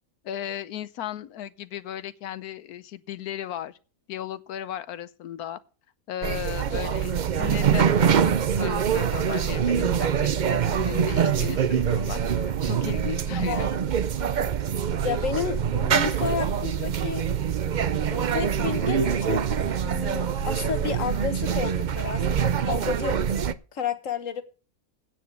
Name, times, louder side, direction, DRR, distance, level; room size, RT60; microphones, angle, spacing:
voice 1, 0.2-3.8 4.1-5.6 6.1-7.1 7.4-13.7, left 11 dB, 80° left, 1.3 m, -36 dB
sound 1, 6.2-23.5, right 8 dB, 70° right, 0.4 m, -24 dB
voice 2, 13.3-13.7 15.0-17.2 18.1-19.5 19.8-23.2 23.7-24.4, left 7 dB, 60° left, 1.6 m, -31 dB
9.3 x 6.8 x 7.8 m
omnidirectional pair, 1.6 m